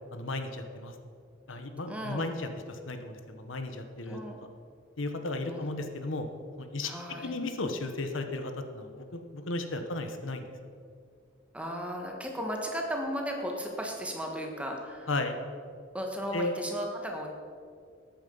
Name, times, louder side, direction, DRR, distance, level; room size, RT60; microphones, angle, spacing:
voice 1, 0.1-0.9 1.5-4.2 5.0-6.2 6.6-6.9 7.2-10.5 15.1-15.4 16.3-16.5, left 2 dB, 75° left, 7 dB, 1.1 m, -34 dB
voice 2, 1.9-2.3 4.1-4.4 5.5-5.7 6.8-7.3 11.5-15.1 15.9-17.3, equal, 5° right, 1 dB, 1.5 m, -35 dB
13.5 x 8.9 x 5.5 m, 2.2 s
head